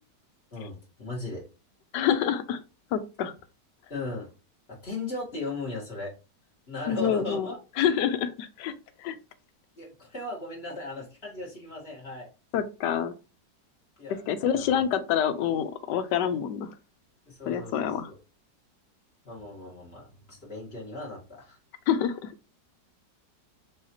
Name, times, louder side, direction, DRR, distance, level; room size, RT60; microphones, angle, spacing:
voice 1, 0.5-1.4 3.9-4.3 4.7-6.1 6.7-7.6 9.8-12.3 14.0-14.3 14.5-14.8 17.3-18.1 19.2-21.6, left 2 dB, 35° left, -4 dB, 1.8 m, -37 dB
voice 2, 1.9-2.6 2.9-3.3 6.9-8.7 9.0-9.2 12.5-13.1 14.1-16.7 17.5-18.1 21.9-22.3, left 8 dB, 80° left, 11 dB, 1.2 m, -27 dB
4.8 x 2.8 x 2.8 m, 0.32 s
omnidirectional pair, 1.9 m